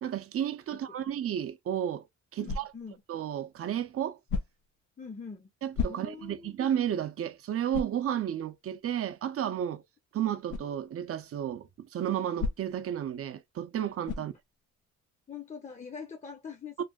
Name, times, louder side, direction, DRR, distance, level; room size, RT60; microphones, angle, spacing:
voice 1, 0.0-2.1 2.3-2.7 3.1-4.2 5.6-9.8 10.1-14.3 16.8-16.9, right 10 dB, 50° right, 0.5 m, -32 dB
sound 1, 2.4-3.0 4.3-4.8 5.7-6.4 6.9-7.0 7.7-8.1 10.5-10.7 12.4-12.9 14.0-14.4, left 5 dB, 80° left, 0.6 m, -34 dB
voice 2, 2.4-3.0 5.0-5.5 5.9-6.5 14.2-14.3 15.3-16.8, left 6 dB, 25° left, 0.6 m, -43 dB
3.2 x 2.5 x 2.3 m
cardioid pair, 90°, 30 cm